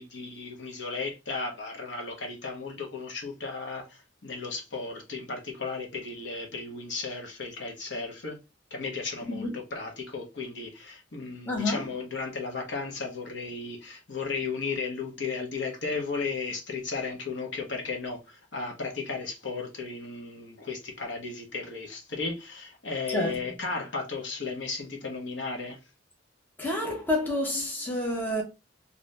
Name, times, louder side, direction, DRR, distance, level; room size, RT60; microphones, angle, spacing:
voice 1, 0.0-8.4 8.7-25.8, left 4 dB, 70° left, 0.9 m, -35 dB
voice 2, 11.4-11.8 23.1-23.4 26.6-28.4, left 1 dB, 10° left, 0.8 m, -29 dB
2.7 x 2.6 x 3.1 m
head